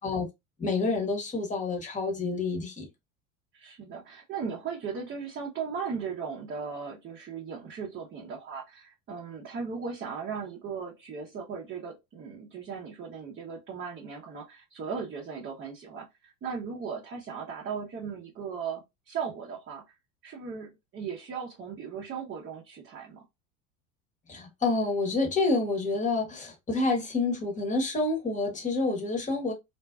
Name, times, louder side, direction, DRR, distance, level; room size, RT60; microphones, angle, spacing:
voice 1, 0.6-2.9 24.3-29.5, left 3 dB, 20° left, 1.0 m, -28 dB
voice 2, 3.5-19.8 20.2-23.2, right 6 dB, 30° right, 0.7 m, -37 dB
2.6 x 2.1 x 2.2 m
hypercardioid pair, 85°, 42 cm